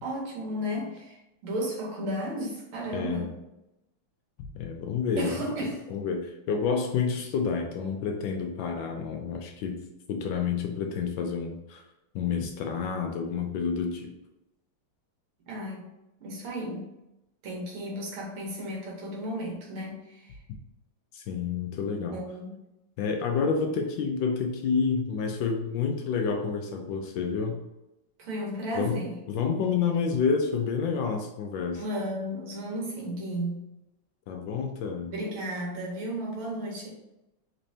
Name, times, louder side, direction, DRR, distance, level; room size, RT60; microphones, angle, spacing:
voice 1, 0.0-3.3 5.2-5.8 15.5-15.8 16.2-16.9 17.4-20.4 22.1-22.6 28.2-29.2 31.7-33.7 35.0-36.9, equal, 85° right, -2 dB, 2.0 m, -34 dB
voice 2, 2.9-3.3 4.4-5.4 5.9-11.8 12.1-14.1 21.1-22.2 23.0-27.6 28.8-29.0 29.3-31.8 34.3-35.1, left 5 dB, 75° left, 3 dB, 1.2 m, -29 dB
4.2 x 3.2 x 2.7 m, 0.92 s
omnidirectional pair, 2.3 m